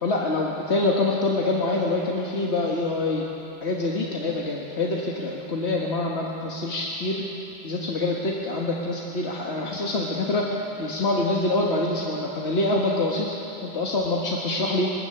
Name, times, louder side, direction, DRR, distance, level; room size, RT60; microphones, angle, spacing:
voice 1, 0.0-3.3 3.6-7.2 7.6-10.5 10.8-13.3 13.6-14.9, left 2 dB, 85° left, -3 dB, 1.9 m, -25 dB
21.5 x 14.0 x 8.8 m, 2.9 s
omnidirectional pair, 1.1 m